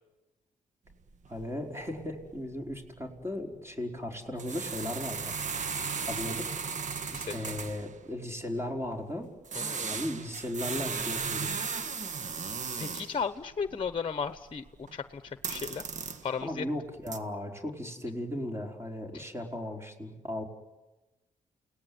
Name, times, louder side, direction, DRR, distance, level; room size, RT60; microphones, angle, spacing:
sound 1, 0.9-1.0 1.2-1.5 1.8-2.0 2.3-2.4 2.7-2.9 4.3-8.0 9.4-13.2 13.6-15.0 15.3-16.4 16.9-17.2, right 5 dB, 60° right, 1.7 m, -36 dB
voice 1, 1.3-5.3 6.1-6.5 7.3-9.3 9.9-11.7 16.4-20.4, left 1 dB, 20° right, 2 dB, 5.0 m, -36 dB
voice 2, 7.1-7.5 9.5-10.0 12.8-15.8 16.2-16.6, left 6 dB, 35° left, 11 dB, 1.0 m, -35 dB
29.5 x 18.5 x 9.6 m, 1.1 s
cardioid pair, 75°, 14 cm